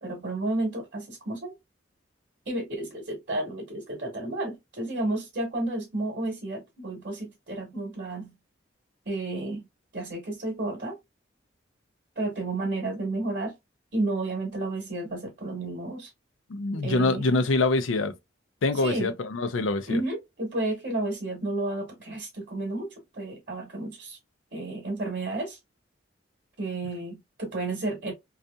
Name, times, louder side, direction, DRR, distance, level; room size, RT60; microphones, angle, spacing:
voice 1, 0.0-1.6 2.5-8.3 9.1-9.6 9.9-11.0 12.2-13.5 13.9-16.1 16.8-17.3 18.8-19.1 19.9-24.2 24.5-25.6 26.6-28.1, right 2 dB, 50° right, 1.0 m, -31 dB
voice 2, 16.5-18.1 18.6-20.0, left 3 dB, 85° left, 0.5 m, -25 dB
2.6 x 2.4 x 2.2 m
head